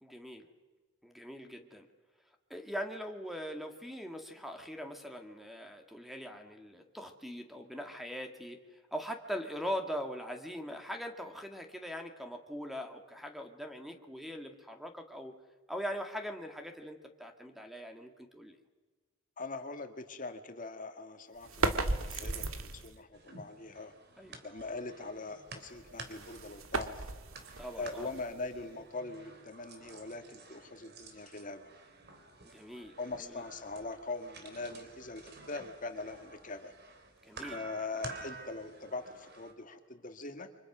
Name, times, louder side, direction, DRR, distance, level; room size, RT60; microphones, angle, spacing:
voice 1, 0.0-0.5 1.0-1.9 2.5-15.4 15.7-18.6 24.2-24.4 27.6-28.1 32.4-33.4 37.2-37.6, equal, ahead, 5 dB, 1.9 m, -41 dB
voice 2, 19.4-23.9 24.4-27.1 27.8-31.7 33.0-36.7 37.5-40.5, left 3 dB, 40° left, 7 dB, 1.9 m, -42 dB
sound 1, 21.4-23.0 25.7-28.7, right 2 dB, 85° right, 1.9 m, -36 dB
sound 2, 23.1-39.5, right 3 dB, 55° right, 3.4 m, -51 dB
29.0 x 25.5 x 6.1 m, 1.3 s
head